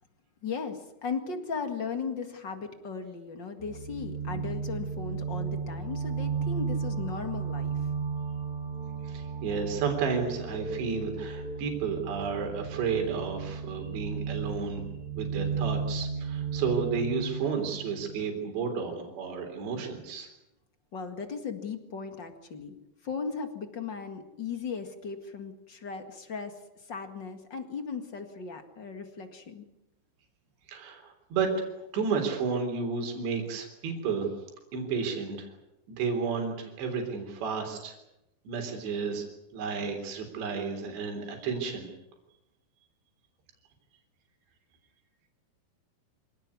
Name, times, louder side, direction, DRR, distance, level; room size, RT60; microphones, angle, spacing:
voice 1, 0.4-7.8 20.9-22.7 23.0-26.5 26.9-29.6, left 5 dB, 45° left, 7 dB, 1.4 m, -37 dB
sound 1, 3.6-18.3, right 5 dB, 15° right, 3.0 m, -34 dB
voice 2, 9.0-14.8 15.1-20.3 30.7-31.5 31.9-34.3 34.7-35.5 35.9-38.0 38.5-39.2 39.5-41.9, right 5 dB, 75° right, 3 dB, 5.7 m, -32 dB
26.0 x 18.0 x 9.6 m, 0.89 s
omnidirectional pair, 5.2 m